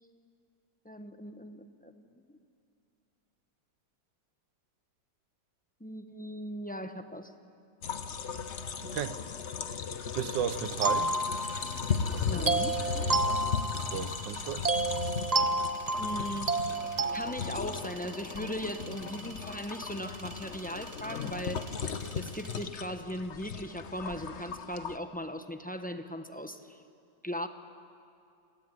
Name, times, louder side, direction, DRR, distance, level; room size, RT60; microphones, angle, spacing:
voice 1, 0.8-2.1 5.8-7.3 12.3-12.8 16.0-16.6 17.1-21.7 22.1-26.8 27.2-27.5, equal, 10° left, 0.6 m, -38 dB
sound 1, 7.8-25.0, left 6 dB, 45° left, 1.1 m, -37 dB
sound 2, 8.0-22.6, right 2 dB, 20° right, 1.8 m, -49 dB
voice 2, 8.8-9.2 10.2-11.2 13.7-14.7, right 9 dB, 75° right, 1.5 m, -34 dB
sound 3, 10.8-11.9 12.5-14.2 14.6-17.3, right 2 dB, 50° right, 0.4 m, -30 dB
29.5 x 21.5 x 9.3 m
omnidirectional pair, 2.0 m